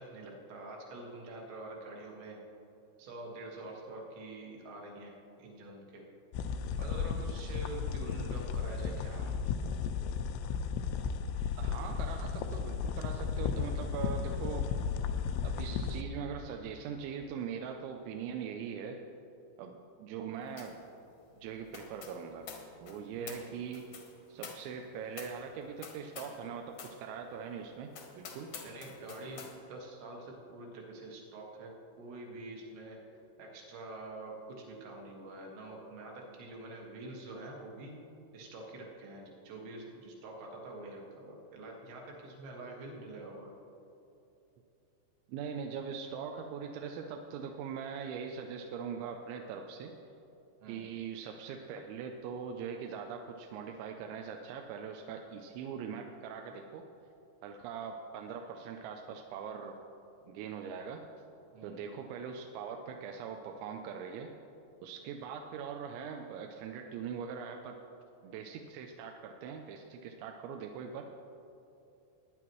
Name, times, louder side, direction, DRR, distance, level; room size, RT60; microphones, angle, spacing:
voice 1, 0.0-2.4 3.0-6.0 6.7-9.3 23.2-23.6 28.6-33.0 33.4-38.0 38.3-43.5 50.6-50.8 61.5-62.0, right 2 dB, 75° right, -1 dB, 3.8 m, -46 dB
sound 1, 6.3-16.0, left 6 dB, 85° left, 2.9 m, -34 dB
voice 2, 11.6-14.7 15.4-19.0 19.6-20.8 21.4-22.5 22.8-23.8 24.3-27.9 28.1-28.5 45.3-49.9 50.7-56.8 57.4-59.7 60.2-61.0 61.6-64.3 64.8-67.8 68.2-71.1, right 6 dB, 90° right, 3 dB, 3.0 m, -41 dB
sound 2, 20.6-20.8 21.1-26.4 26.7-27.0 27.4-27.5 27.9-29.5, left 6 dB, 70° left, 1.9 m, -48 dB
20.0 x 9.8 x 3.1 m, 2.8 s
omnidirectional pair, 5.2 m